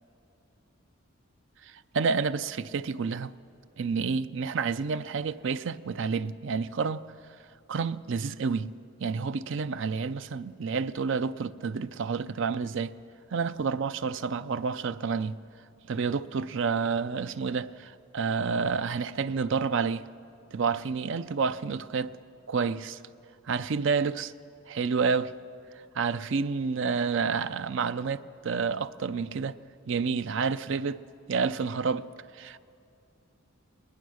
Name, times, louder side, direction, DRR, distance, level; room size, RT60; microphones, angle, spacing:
voice 1, 1.9-3.3 3.8-7.0 7.7-8.7 9.0-13.0 13.3-15.4 15.9-20.0 20.5-22.1 22.5-23.0 23.5-24.3 24.7-25.3 26.0-29.5 29.9-31.0 31.3-32.1 32.4-32.6, right 5 dB, 65° right, 0.5 m, -29 dB
21.0 x 20.0 x 6.4 m
head